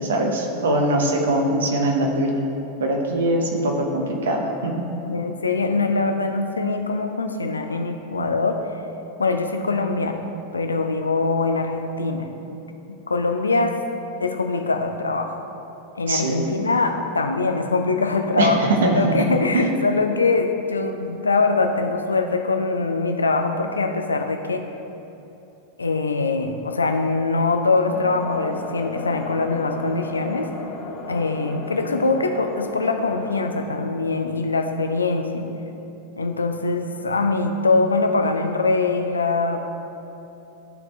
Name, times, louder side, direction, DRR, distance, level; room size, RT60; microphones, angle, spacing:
voice 1, 0.0-2.5 2.8-4.9 16.1-16.4 18.4-19.3 19.5-19.7, right 1 dB, 65° right, 1 dB, 1.0 m, -22 dB
voice 2, 5.1-8.7 9.2-10.3 10.5-12.3 12.9-13.8 14.2-15.4 16.0-24.7 25.8-30.5 31.1-35.5 36.2-39.6, left 3 dB, 75° left, 5 dB, 0.5 m, -23 dB
sound 1, 27.9-33.7, left 3 dB, 35° left, 0.9 m, -35 dB
12.5 x 4.4 x 3.2 m, 2.9 s
figure-of-eight pair, 90°, 0 cm